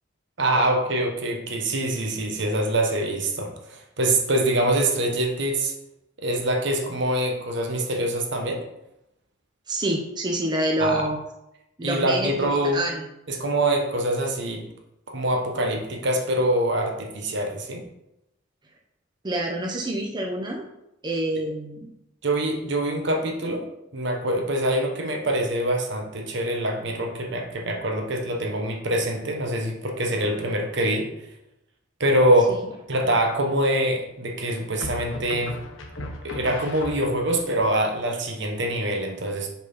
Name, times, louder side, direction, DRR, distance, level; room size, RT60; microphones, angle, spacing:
voice 1, 0.4-5.7 6.2-8.6 10.8-11.0 11.8-12.8 13.3-14.6 15.1-17.8 22.2-23.7 23.9-31.1 32.0-32.6 32.9-35.5 36.0-39.5, right 1 dB, 65° right, 2 dB, 1.2 m, -24 dB
voice 2, 9.7-11.2 11.8-12.3 12.7-13.1 19.2-20.7 21.0-21.9 32.5-32.6, right 1 dB, 25° right, 0 dB, 0.8 m, -27 dB
sound 1, 32.3-32.7 34.8-37.5, left 1 dB, 85° left, 1.0 m, -37 dB
6.0 x 4.2 x 5.5 m, 0.87 s
head